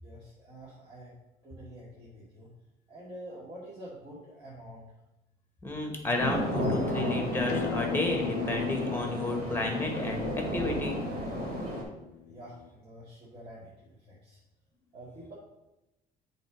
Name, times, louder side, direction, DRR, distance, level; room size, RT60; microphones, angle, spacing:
voice 1, 0.0-1.1 1.4-2.5 2.9-4.9 12.2-14.4 14.9-15.3, right 1 dB, 35° right, -8 dB, 2.1 m, -47 dB
voice 2, 5.6-11.0, left 2 dB, 15° left, 3 dB, 1.5 m, -31 dB
sound 1, 6.2-11.8, equal, 55° right, 2.6 m, -33 dB
Acoustic guitar, 7.5-12.7, left 15 dB, 90° left, 0.4 m, -39 dB
7.8 x 3.5 x 5.0 m, 0.95 s
cardioid pair, 110°, 17 cm